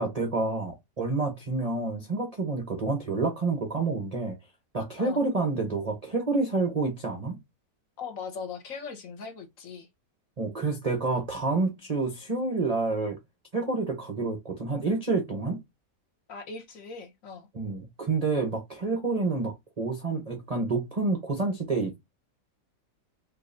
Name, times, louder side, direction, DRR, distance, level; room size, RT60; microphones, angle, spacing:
voice 1, 0.0-4.4 4.7-7.4 10.4-13.2 13.5-15.6 17.5-22.0, right 3 dB, 50° right, 0.4 m, -28 dB
voice 2, 8.0-9.9 16.3-17.5, left 5 dB, 55° left, 1.1 m, -39 dB
4.5 x 2.8 x 2.5 m
omnidirectional pair, 1.9 m